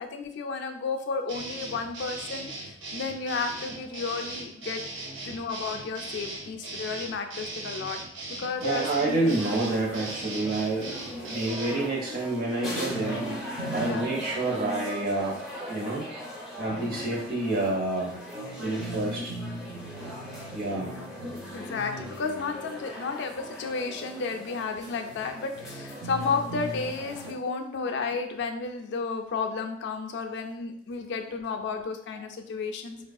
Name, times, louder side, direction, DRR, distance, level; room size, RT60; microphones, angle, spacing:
voice 1, 0.0-4.8 5.2-8.0 8.4-9.2 13.8-14.0 21.5-33.0, left 4 dB, 65° left, 5 dB, 0.4 m, -32 dB
sound 1, 1.3-11.8, right 2 dB, 85° right, 0.6 m, -38 dB
voice 2, 8.6-13.2 13.7-15.4 15.7-16.1 16.6-18.2 18.6-19.3 20.5-21.0, right 2 dB, 50° right, -2 dB, 0.8 m, -28 dB
sound 2, 9.1-27.3, equal, ahead, 0.6 m, -38 dB
3.4 x 2.3 x 2.3 m, 0.69 s
head